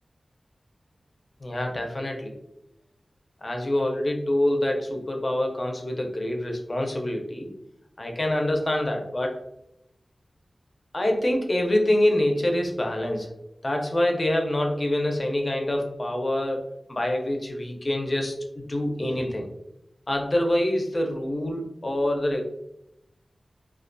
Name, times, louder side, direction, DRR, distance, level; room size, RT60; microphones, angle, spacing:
voice 1, 1.4-2.4 3.4-7.5 8.0-9.4 10.9-13.3 13.6-19.5 20.1-22.4, left 1 dB, 45° left, 2 dB, 0.5 m, -26 dB
2.3 x 2.1 x 2.5 m, 0.84 s
wide cardioid pair, 50°, 0 cm